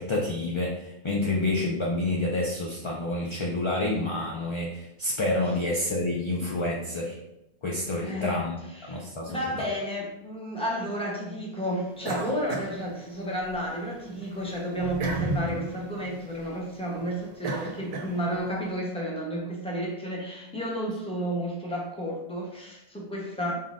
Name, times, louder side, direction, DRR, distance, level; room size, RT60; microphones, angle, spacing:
voice 1, 0.0-7.2 7.6-8.5 8.9-9.4, left 2 dB, 40° left, -2 dB, 0.5 m, -28 dB
voice 2, 8.0-8.4 8.7-23.5, equal, 5° left, -3 dB, 0.8 m, -32 dB
sound 1, 12.0-13.6 14.0-18.6, right 2 dB, 70° right, 0.8 m, -34 dB
4.3 x 3.7 x 2.5 m, 0.90 s
omnidirectional pair, 1.1 m